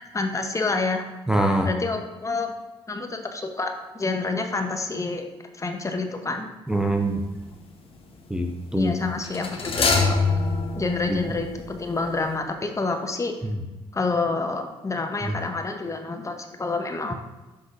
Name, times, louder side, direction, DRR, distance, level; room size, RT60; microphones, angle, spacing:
voice 1, 0.1-1.0 1.6-2.5 2.9-5.2 5.5-6.5 8.7-10.2 10.7-13.3 13.9-17.1, left 3 dB, 25° left, 4 dB, 0.9 m, -28 dB
voice 2, 1.3-1.7 6.7-7.2 8.3-8.9 11.1-11.2 13.4-13.6 15.2-15.3, right 1 dB, 5° right, 2 dB, 0.6 m, -24 dB
sound 1, 6.8-7.1 9.2-12.0 12.3-12.4, left 4 dB, 50° left, 1.1 m, -25 dB
11.0 x 3.8 x 2.6 m, 1.1 s
hypercardioid pair, 50°, 13 cm